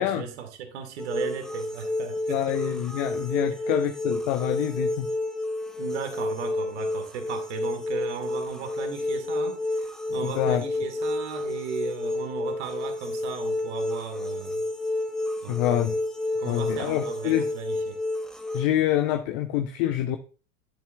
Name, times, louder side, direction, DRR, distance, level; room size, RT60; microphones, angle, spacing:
voice 1, 0.0-2.6 5.8-14.7 15.4-15.9 16.4-18.0, right 7 dB, 55° right, 1.8 m, -36 dB
sound 1, 1.0-18.7, left 2 dB, ahead, 0.9 m, -30 dB
voice 2, 2.3-5.1 10.2-10.6 15.5-16.0 16.4-17.5 18.5-20.2, left 12 dB, 45° left, 0.7 m, -26 dB
11.0 x 7.0 x 2.3 m
figure-of-eight pair, 80°, 40 cm